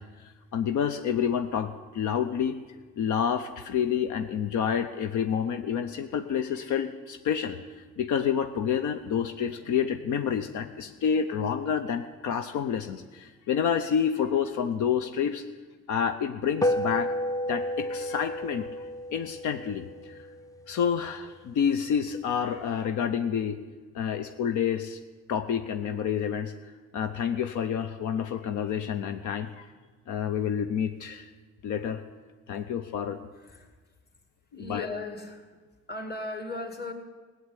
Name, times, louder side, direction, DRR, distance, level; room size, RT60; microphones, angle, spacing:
voice 1, 0.0-2.6 3.0-15.4 15.9-17.1 17.5-20.2 20.7-23.6 23.9-25.0 25.3-26.5 26.9-29.7 30.1-31.3 31.6-32.0 32.5-33.2 34.6-34.9, left 8 dB, 80° left, 8 dB, 0.8 m, -29 dB
sound 1, 16.6-21.3, left 1 dB, 10° left, 0.5 m, -31 dB
voice 2, 33.4-33.7 34.5-35.5 35.9-36.9, left 2 dB, 35° left, 5 dB, 2.4 m, -37 dB
16.0 x 7.9 x 9.8 m, 1.4 s
cardioid pair, 90°, 30 cm